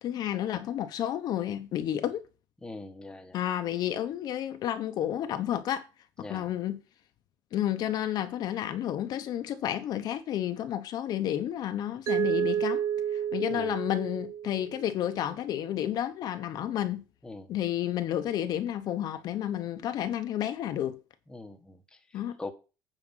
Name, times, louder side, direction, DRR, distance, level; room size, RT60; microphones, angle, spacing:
voice 1, 0.0-2.2 3.3-5.8 6.3-6.8 7.5-12.8 13.1-17.0 17.5-21.0 22.1-22.4, left 11 dB, 50° left, 0.9 m, -31 dB
voice 2, 2.6-3.4 6.2-6.5 13.5-13.7 17.2-17.5 21.3-22.0 22.4-22.5, left 2 dB, 10° left, 1.1 m, -42 dB
Mallet percussion, 12.1-15.0, right 9 dB, 40° right, 0.4 m, -30 dB
9.0 x 5.0 x 5.8 m
cardioid pair, 150°, 9 cm